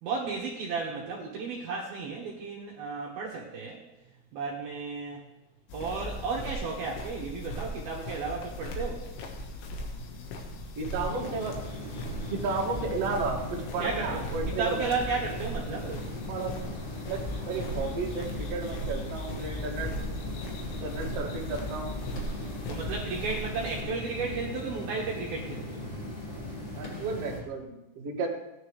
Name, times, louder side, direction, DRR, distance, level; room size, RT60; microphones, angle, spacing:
voice 1, 0.0-3.8 4.3-5.2 5.7-9.1 13.8-14.3 14.6-16.1 22.7-25.9, right 4 dB, 65° right, -3 dB, 2.7 m, -33 dB
sound 1, 5.7-23.8, left 1 dB, 80° left, 3.9 m, -38 dB
voice 2, 10.8-11.5 12.3-13.4 13.7-14.8 16.3-16.7 17.1-19.9 20.7-21.9 26.8-28.3, right 4 dB, 45° right, -3 dB, 2.2 m, -33 dB
sound 2, 10.9-27.4, left 1 dB, 45° left, 0.8 m, -39 dB
17.0 x 10.0 x 3.3 m, 0.94 s
omnidirectional pair, 5.7 m